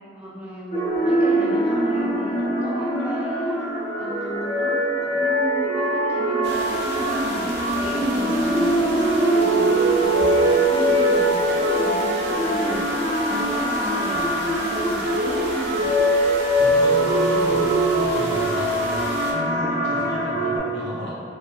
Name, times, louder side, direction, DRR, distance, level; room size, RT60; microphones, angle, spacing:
voice 1, 0.1-3.6 4.0-15.9, equal, 5° right, -7 dB, 0.3 m, -33 dB
sound 1, 0.7-20.6, right 1 dB, 45° left, 0.6 m, -22 dB
sound 2, 6.4-19.3, right 1 dB, 75° right, 0.4 m, -35 dB
voice 2, 16.6-21.1, left 1 dB, 75° left, -8 dB, 0.8 m, -32 dB
2.5 x 2.3 x 2.4 m, 2.4 s
head